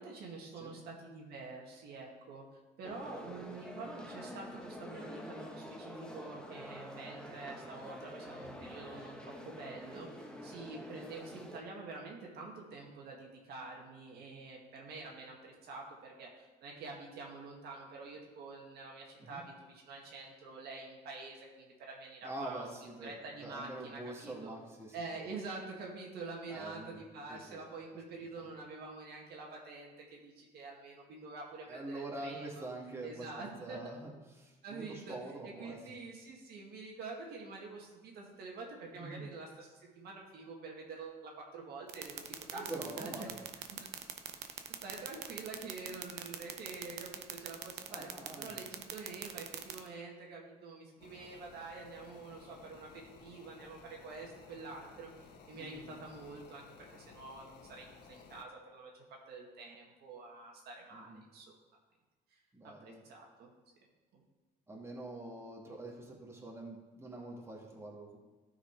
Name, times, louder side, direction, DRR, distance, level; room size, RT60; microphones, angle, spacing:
voice 1, 0.0-2.4 2.8-22.7 23.0-24.5 24.9-32.7 33.0-33.9 34.6-35.2 35.4-42.2 42.5-42.7 43.0-43.3 43.7-43.8 44.8-48.1 48.4-55.1 55.5-61.5 62.3-63.5 64.1-64.2, right 3 dB, 70° right, -1 dB, 1.8 m, -47 dB
sound 1, 2.8-11.6, left 1 dB, 5° left, 1.0 m, -47 dB
voice 2, 22.2-23.1 23.4-25.0 26.5-27.0 27.3-27.6 31.7-35.8 39.0-39.3 42.5-43.4 47.9-48.6 55.5-55.9 60.9-61.2 62.5-63.0 64.7-68.2, right 2 dB, 15° right, -2 dB, 2.1 m, -45 dB
sound 2, 41.9-49.8, right 13 dB, 85° right, 0.8 m, -40 dB
sound 3, 51.0-58.4, left 5 dB, 75° left, 1.1 m, -57 dB
12.5 x 4.9 x 4.6 m, 1.2 s
cardioid pair, 110°, 17 cm